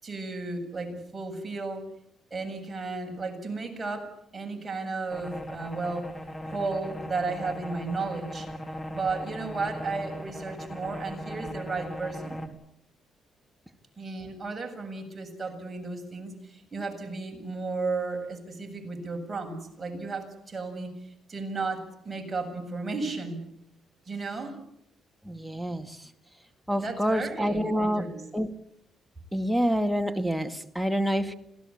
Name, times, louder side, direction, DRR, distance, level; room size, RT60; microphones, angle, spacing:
voice 1, 0.0-1.8 2.3-6.1 6.5-8.5 8.9-12.5 14.0-20.9 21.3-23.4 24.1-24.6 26.8-28.2, right 3 dB, 25° right, 3 dB, 7.8 m, -34 dB
sound 1, 5.1-12.5, equal, 25° left, 3.8 m, -38 dB
voice 2, 25.3-25.9 26.7-28.0 28.3-28.5 29.3-31.3, equal, ahead, 7 dB, 2.1 m, -27 dB
27.0 x 17.5 x 8.6 m, 0.73 s
cardioid pair, 90°, 0 cm